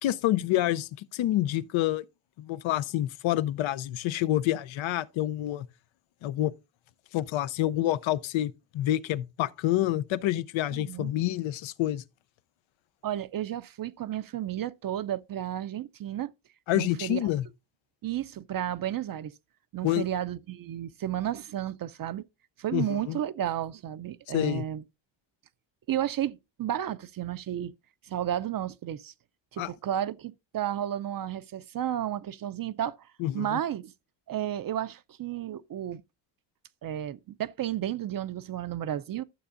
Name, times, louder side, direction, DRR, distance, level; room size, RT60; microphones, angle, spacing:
voice 1, 0.0-2.0 2.4-5.7 6.2-6.5 7.1-12.0 16.7-17.5 19.8-20.1 22.7-23.2 24.3-24.6 29.6-29.7 33.2-33.6, left 14 dB, 85° left, 0.6 m, -28 dB
voice 2, 10.7-11.1 13.0-16.3 16.7-17.2 18.0-19.3 19.7-22.3 22.6-24.8 25.9-27.7 28.1-29.1 29.5-33.0 33.3-33.9 34.3-36.0 36.8-39.2, right 11 dB, 50° right, 0.5 m, -32 dB
12.0 x 6.9 x 2.5 m
cardioid pair, 90°, 45 cm